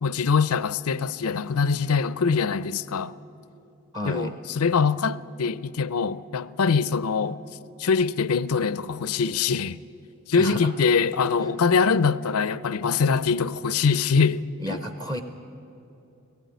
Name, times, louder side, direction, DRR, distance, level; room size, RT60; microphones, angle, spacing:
voice 1, 0.0-3.1 4.1-7.4 7.8-9.8 10.3-14.8, left 5 dB, 85° left, 0.5 m, -23 dB
voice 2, 3.9-4.4 10.4-10.7 11.4-11.5 14.6-15.2, equal, 20° right, 0.7 m, -32 dB
18.5 x 15.5 x 9.3 m
head